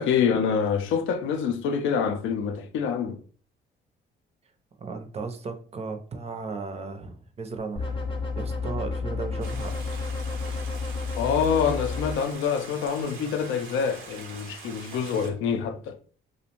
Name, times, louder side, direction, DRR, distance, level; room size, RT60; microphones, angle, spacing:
voice 1, 0.0-3.2 11.1-16.0, left 7 dB, 80° left, 0.4 m, -26 dB
voice 2, 4.8-8.0 8.4-9.7, right 4 dB, 30° right, 0.5 m, -35 dB
sound 1, 7.8-12.1, left 4 dB, 25° left, 0.6 m, -31 dB
Stream, 9.4-15.3, right 4 dB, 90° right, 0.7 m, -44 dB
2.5 x 2.1 x 2.8 m
cardioid pair, 90°, 20 cm